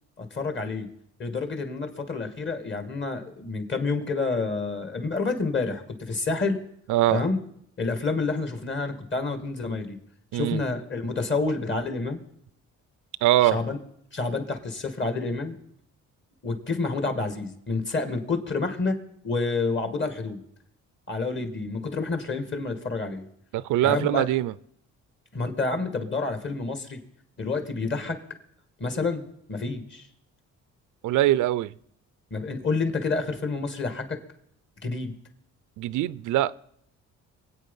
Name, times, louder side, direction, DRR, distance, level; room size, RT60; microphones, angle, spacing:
voice 1, 0.2-0.9 1.2-6.6 7.1-7.4 7.8-10.0 10.3-12.2 13.4-13.8 14.1-15.6 16.4-19.0 19.2-20.4 21.1-23.2 23.8-24.3 25.3-27.0 27.4-28.2 28.8-30.1 32.3-34.2 34.8-35.1, left 3 dB, 40° left, 2.2 m, -28 dB
voice 2, 6.9-7.2 10.3-10.6 13.2-13.6 23.5-24.5 31.0-31.7 35.8-36.5, right 14 dB, 80° right, 0.5 m, -22 dB
22.5 x 8.5 x 5.6 m
cardioid pair, 90°, 30 cm